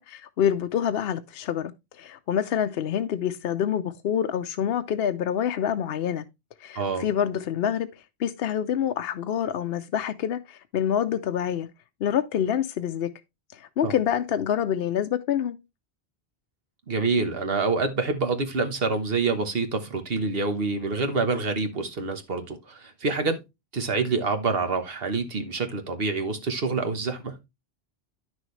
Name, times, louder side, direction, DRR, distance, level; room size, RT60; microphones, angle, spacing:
voice 1, 0.0-6.2 6.6-7.9 8.2-11.7 12.0-13.1 13.5-15.6, left 9 dB, 70° left, 0.8 m, -27 dB
voice 2, 6.7-7.1 13.8-14.0 16.9-23.4 23.7-27.4, right 4 dB, 60° right, 1.4 m, -27 dB
9.9 x 6.3 x 3.2 m
omnidirectional pair, 1.1 m